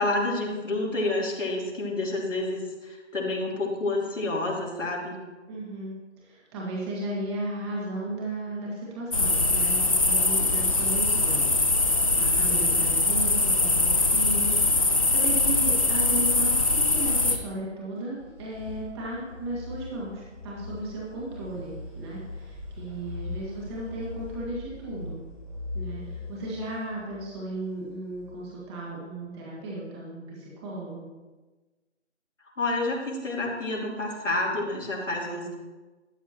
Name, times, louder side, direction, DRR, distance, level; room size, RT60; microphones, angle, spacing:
voice 1, 0.0-5.2 32.6-35.5, left 2 dB, 80° left, -3 dB, 3.1 m, -29 dB
voice 2, 5.5-25.2 25.7-31.1, right 2 dB, 20° right, -5 dB, 1.9 m, -35 dB
sound 1, 9.1-17.4, left 2 dB, 30° left, 0.5 m, -22 dB
sound 2, 18.0-28.8, left 3 dB, 5° right, 1.0 m, -41 dB
13.0 x 8.1 x 2.9 m, 1.2 s
figure-of-eight pair, 155°, 37 cm